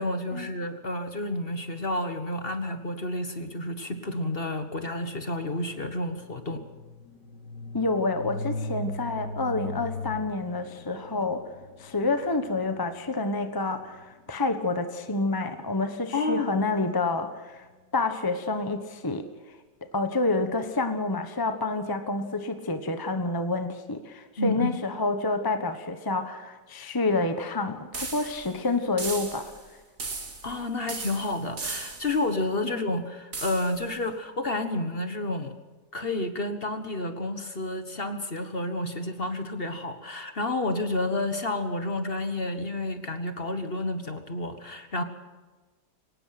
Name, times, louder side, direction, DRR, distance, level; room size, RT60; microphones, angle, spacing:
voice 1, 0.0-6.6 16.1-16.6 24.4-24.7 30.4-35.6 35.9-45.0, left 2 dB, 35° left, 8 dB, 1.6 m, -30 dB
sound 1, 5.6-14.9, left 2 dB, 85° left, 3.5 m, -40 dB
voice 2, 7.7-11.5 11.8-17.6 17.9-19.3 19.9-29.5 32.7-32.8, left 3 dB, 15° left, 8 dB, 1.2 m, -28 dB
sound 2, 27.9-28.5 29.0-29.6 30.0-30.6 30.9-32.2 33.3-33.8, right 3 dB, 60° right, 3.2 m, -36 dB
24.0 x 19.0 x 5.9 m, 1.3 s
omnidirectional pair, 1.8 m